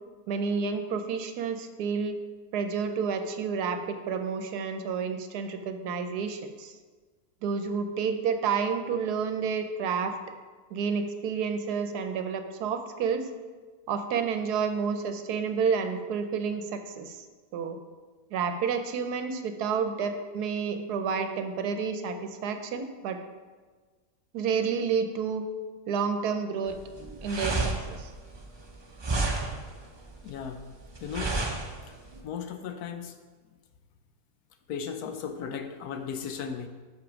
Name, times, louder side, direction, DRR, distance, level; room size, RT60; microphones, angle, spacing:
voice 1, 0.3-2.2 2.5-6.7 7.4-10.2 10.7-13.3 13.9-17.2 17.5-17.8 18.3-23.2 24.3-25.5 25.9-26.8 27.2-28.1, right 6 dB, 80° right, 7 dB, 1.2 m, -30 dB
sound 1, 26.7-32.2, right 2 dB, 30° right, 0.5 m, -31 dB
voice 2, 30.2-30.7 31.0-31.4 31.9-32.0 32.2-33.2 34.7-36.7, left 7 dB, 75° left, 7 dB, 1.1 m, -36 dB
6.4 x 5.8 x 5.1 m, 1.4 s
omnidirectional pair, 1.7 m